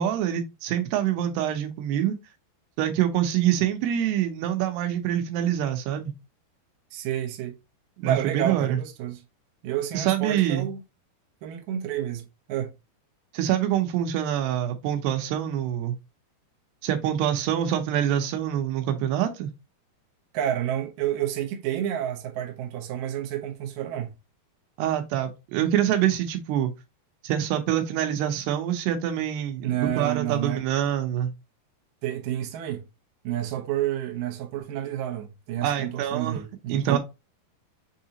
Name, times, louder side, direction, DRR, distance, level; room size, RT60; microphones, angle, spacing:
voice 1, 0.0-2.2 2.8-6.1 8.0-8.8 9.9-10.7 13.3-16.0 16.8-19.5 24.8-26.7 27.2-31.3 35.6-36.4 36.7-37.0, right 11 dB, 90° right, 2.9 m, -25 dB
voice 2, 6.9-7.6 8.0-9.2 9.6-10.8 11.4-12.7 20.3-24.2 29.6-30.6 32.0-32.8 33.2-37.0, right 11 dB, 70° right, 2.3 m, -30 dB
6.5 x 2.8 x 2.8 m
omnidirectional pair, 4.6 m